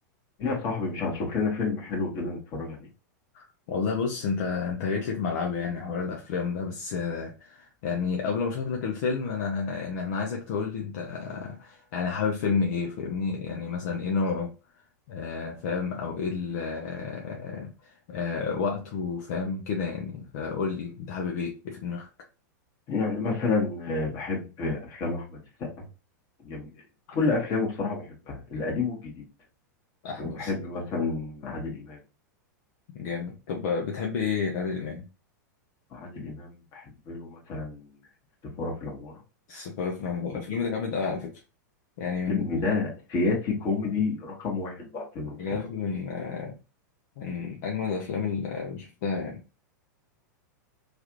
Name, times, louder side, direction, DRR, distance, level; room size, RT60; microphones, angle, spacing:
voice 1, 0.4-2.9 22.9-25.7 26.4-26.7 27.1-29.2 30.2-32.0 35.9-37.8 38.6-39.1 42.3-45.4, left 4 dB, 40° left, -1 dB, 1.4 m, -30 dB
voice 2, 3.3-14.5 15.1-22.1 27.1-27.2 30.0-30.5 32.9-35.1 39.5-41.4 42.0-42.4 45.4-46.5 47.2-49.4, left 5 dB, 60° left, 1 dB, 0.7 m, -30 dB
3.2 x 2.5 x 3.0 m, 0.32 s
hypercardioid pair, 115°, 10 cm